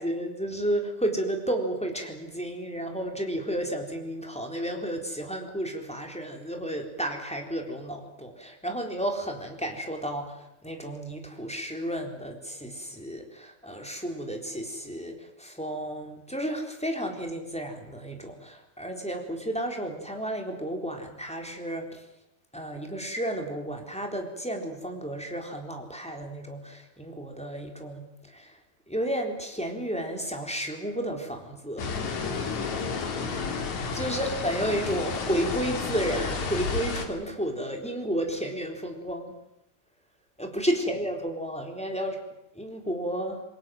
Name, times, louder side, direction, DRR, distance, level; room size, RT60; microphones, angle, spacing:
voice 1, 0.0-22.1 22.5-28.6 28.9-32.0 33.9-39.3 40.4-42.2 42.5-43.4, right 1 dB, ahead, 2 dB, 3.3 m, -32 dB
sound 1, 31.8-37.1, left 5 dB, 55° left, 3.7 m, -31 dB
29.0 x 22.0 x 7.7 m, 0.83 s
omnidirectional pair, 4.2 m